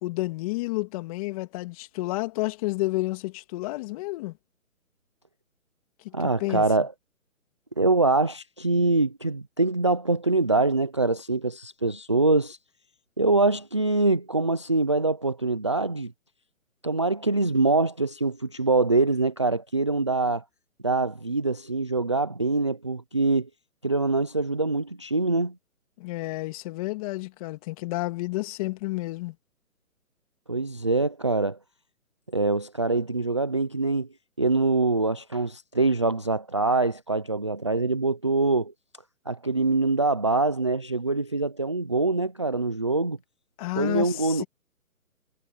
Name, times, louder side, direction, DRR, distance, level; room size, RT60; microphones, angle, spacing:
voice 1, 0.0-4.4 6.0-6.6 26.0-29.3 43.6-44.4, left 21 dB, 25° left, 2.6 m, -30 dB
voice 2, 6.1-6.9 7.8-12.6 13.2-16.1 16.8-20.4 20.8-23.5 23.8-25.5 30.5-31.6 32.3-34.1 34.4-38.7 39.3-43.2 43.8-44.4, right 3 dB, 20° right, 0.4 m, -24 dB
hypercardioid pair, 150°, 43 cm